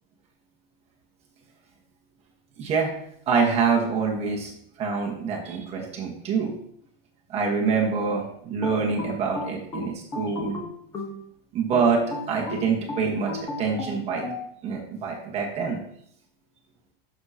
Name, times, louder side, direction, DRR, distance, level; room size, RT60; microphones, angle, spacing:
voice 1, 2.6-2.9 3.3-4.5 4.8-6.5 7.3-10.6 11.5-13.3 13.6-14.2 14.6-15.8, right 5 dB, 20° right, -1 dB, 1.3 m, -25 dB
sound 1, 8.6-11.2 11.7-14.4, left 3 dB, 15° left, 1.0 m, -34 dB
12.0 x 6.4 x 2.8 m, 0.69 s
supercardioid pair, 180°, 31 cm